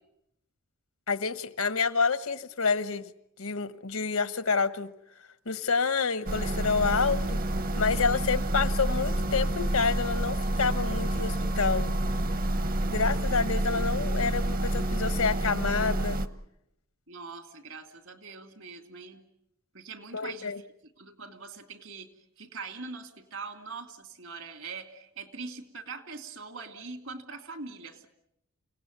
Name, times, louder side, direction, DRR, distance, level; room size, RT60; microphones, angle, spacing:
voice 1, 1.1-3.1 3.4-4.9 5.5-7.4 7.8-11.9 12.9-16.2 20.1-20.6, left 5 dB, 80° left, 1.2 m, -28 dB
sound 1, 6.3-16.3, right 1 dB, 40° right, 1.0 m, -28 dB
voice 2, 17.1-19.2 19.7-20.5 20.8-22.1 22.4-28.1, right 4 dB, 70° right, 2.7 m, -42 dB
29.5 x 17.5 x 9.4 m
head